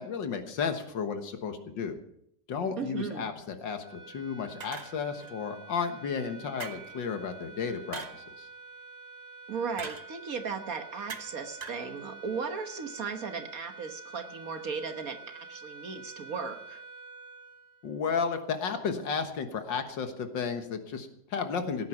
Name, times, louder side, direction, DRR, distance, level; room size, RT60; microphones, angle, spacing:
voice 1, 0.0-2.0 2.5-8.5 17.8-21.9, left 6 dB, 85° left, 7 dB, 2.1 m, -33 dB
voice 2, 2.8-3.3 9.5-16.8, right 5 dB, 55° right, 6 dB, 1.6 m, -36 dB
sound 1, 3.8-18.3, right 4 dB, 10° right, 5.9 m, -48 dB
sound 2, 4.6-5.3 6.6-7.0 7.9-8.3 9.8-10.1 11.1-11.4 11.6-11.9, right 4 dB, 30° right, 0.8 m, -41 dB
17.0 x 9.4 x 5.9 m, 0.74 s
omnidirectional pair, 2.0 m